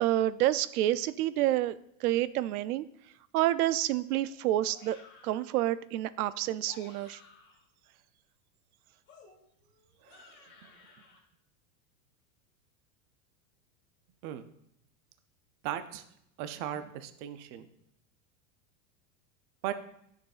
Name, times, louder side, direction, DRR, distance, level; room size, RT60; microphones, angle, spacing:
voice 1, 0.0-2.9 3.3-5.0 5.2-7.2, right 14 dB, 85° right, 16 dB, 0.5 m, -28 dB
sound 1, 4.7-5.5 6.5-7.7 9.1-11.2, left 4 dB, 25° left, 1.7 m, -56 dB
voice 2, 15.6-16.0 16.4-17.7 19.6-19.7, right 11 dB, 30° right, 10 dB, 0.4 m, -37 dB
10.0 x 6.6 x 2.4 m, 0.75 s
supercardioid pair, 150°, 43 cm